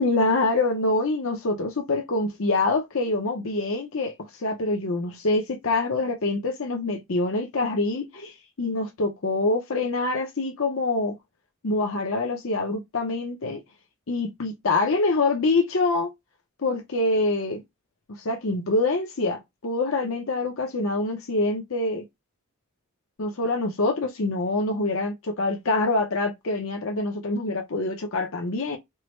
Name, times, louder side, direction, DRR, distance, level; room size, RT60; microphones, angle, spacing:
voice 1, 0.0-11.2 11.6-13.6 14.1-16.1 16.6-17.6 18.2-22.0 23.2-28.8, left 2 dB, 65° left, 0.7 m, -25 dB
4.6 x 2.1 x 3.1 m
head